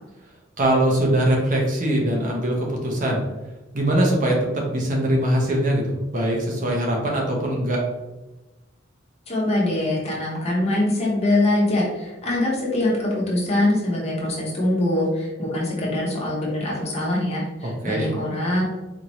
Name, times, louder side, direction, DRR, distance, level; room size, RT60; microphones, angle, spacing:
voice 1, 0.6-3.2 3.7-7.8 17.6-18.1, right 1 dB, 45° right, -1 dB, 0.9 m, -22 dB
voice 2, 9.3-18.6, left 1 dB, 35° left, -4 dB, 1.2 m, -23 dB
4.3 x 2.9 x 3.0 m, 1.1 s
head